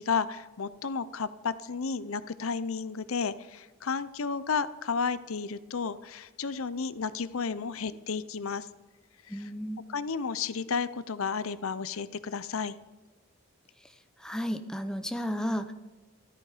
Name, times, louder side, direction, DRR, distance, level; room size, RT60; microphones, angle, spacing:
voice 1, 0.0-8.7 9.9-12.8, left 5 dB, 75° left, 15 dB, 0.7 m, -32 dB
voice 2, 9.3-9.8 14.2-15.7, equal, 5° left, 7 dB, 0.7 m, -33 dB
14.0 x 13.5 x 5.0 m, 1.1 s
head